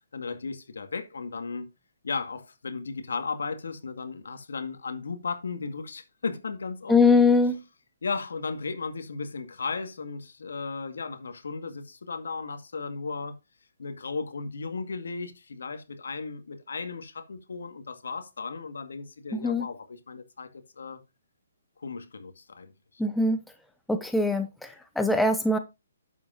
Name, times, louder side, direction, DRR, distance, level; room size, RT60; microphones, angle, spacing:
voice 1, 0.1-1.7 2.0-7.0 8.0-13.4 13.8-21.0 21.8-23.0, left 4 dB, 80° left, 2.0 m, -35 dB
voice 2, 6.9-7.6 19.3-19.7 23.0-23.4 23.9-25.6, left 3 dB, 5° left, 0.9 m, -22 dB
10.5 x 7.8 x 2.7 m
hypercardioid pair, 155°, 0 cm